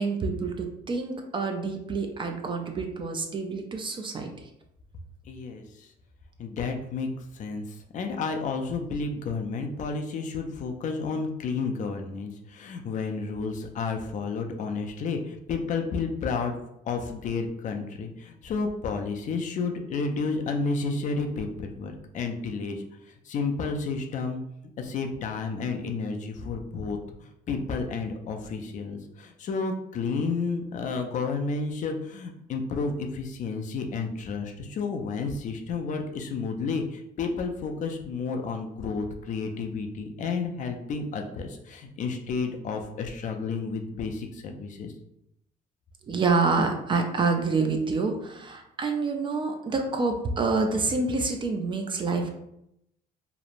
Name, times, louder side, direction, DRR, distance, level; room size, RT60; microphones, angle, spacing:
voice 1, 0.0-4.3 46.1-52.3, right 4 dB, 30° right, 4 dB, 0.4 m, -27 dB
voice 2, 5.3-5.9 6.4-7.1 7.3-16.6 16.9-22.8 23.3-24.4 24.8-27.0 27.5-44.9, left 4 dB, 50° left, 4 dB, 0.4 m, -31 dB
2.9 x 2.0 x 2.5 m, 0.79 s
cardioid pair, 110°, 17 cm